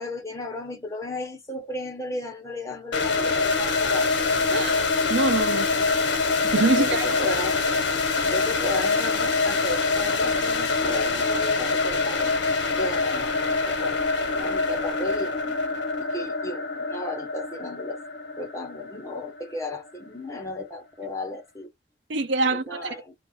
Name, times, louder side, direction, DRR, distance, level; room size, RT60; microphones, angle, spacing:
voice 1, 0.0-4.2 6.6-7.6 8.2-12.4 12.7-13.3 13.6-15.6 16.0-18.0 18.4-21.7 22.4-23.1, left 2 dB, 15° left, 1.0 m, -34 dB
sound 1, 2.9-19.8, left 4 dB, 75° left, 1.0 m, -25 dB
voice 2, 4.5-4.8 5.1-5.7 6.4-7.1 22.1-22.6, right 3 dB, 75° right, 0.7 m, -24 dB
2.6 x 2.4 x 3.9 m
head